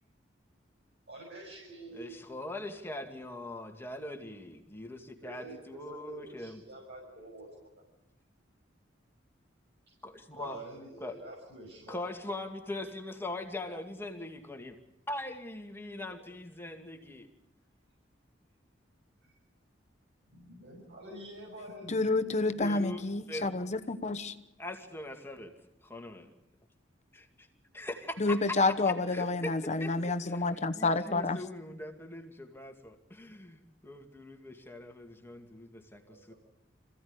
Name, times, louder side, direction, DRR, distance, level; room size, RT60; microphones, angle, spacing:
voice 1, 1.1-2.1 5.2-7.8 10.3-12.1 19.2-19.3 20.3-23.0 23.4-23.6 23.9-24.2 29.2-29.7 36.0-36.4, right 2 dB, 65° right, -2 dB, 6.5 m, -48 dB
voice 2, 1.9-6.6 10.0-10.6 11.0-11.1 11.9-14.8 15.1-17.3 22.5-23.0 23.3-23.5 24.6-25.6 25.8-26.3 27.1-27.5 27.7-28.6 29.1-30.4 30.7-36.3, left 2 dB, 10° left, 4 dB, 2.4 m, -41 dB
voice 3, 21.9-24.3 28.2-31.4, left 3 dB, 40° left, 10 dB, 1.0 m, -29 dB
27.0 x 16.0 x 9.9 m, 0.88 s
head